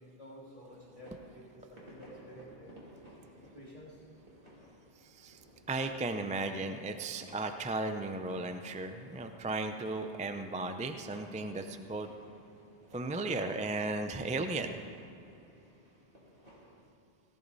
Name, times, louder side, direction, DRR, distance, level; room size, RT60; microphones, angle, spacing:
voice 1, 0.0-2.7 3.5-4.0, equal, 30° left, -6 dB, 2.9 m, -51 dB
sound 1, 0.6-16.8, equal, 55° right, 3.0 m, -57 dB
voice 2, 5.0-5.4 5.7-12.1 12.9-14.8, right 2 dB, 10° right, 7 dB, 0.4 m, -35 dB
17.5 x 14.5 x 4.1 m, 2.7 s
omnidirectional pair, 1.1 m